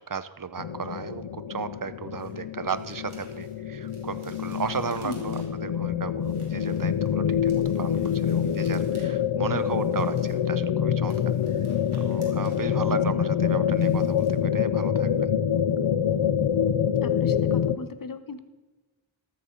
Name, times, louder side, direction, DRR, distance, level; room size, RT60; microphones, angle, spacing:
voice 1, 0.0-11.1 11.5-11.7 11.9-15.3, right 6 dB, 40° right, 14 dB, 0.8 m, -35 dB
sound 1, 0.6-17.8, left 8 dB, 65° left, 0.6 m, -26 dB
sound 2, 2.2-5.7 6.2-9.1 9.3-10.5 10.9-14.8 15.1-15.3 15.7-15.8, right 2 dB, 80° right, 3.4 m, -56 dB
voice 2, 5.0-5.4 12.9-13.2 17.0-18.4, left 4 dB, 40° left, 10 dB, 1.1 m, -38 dB
14.0 x 13.0 x 3.9 m, 1.2 s
wide cardioid pair, 55°, 49 cm